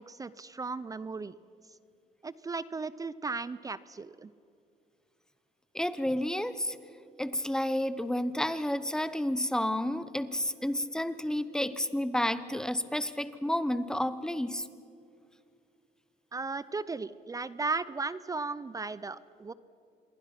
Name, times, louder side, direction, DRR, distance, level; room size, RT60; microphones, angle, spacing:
voice 1, 0.0-1.3 2.2-4.3 16.3-19.5, right 4 dB, 20° right, 17 dB, 0.5 m, -36 dB
voice 2, 5.7-6.8 7.2-14.6, left 1 dB, 5° left, 13 dB, 0.9 m, -31 dB
27.0 x 22.5 x 5.9 m, 2.6 s
cardioid pair, 110°, 17 cm